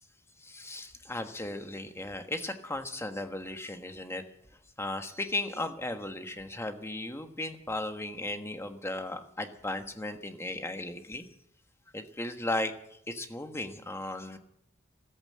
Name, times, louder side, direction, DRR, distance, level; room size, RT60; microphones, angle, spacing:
voice 1, 0.4-4.2 4.8-11.3 11.9-12.7 13.1-14.4, left 2 dB, 15° left, 7 dB, 1.4 m, -36 dB
14.5 x 13.0 x 7.6 m, 0.72 s
head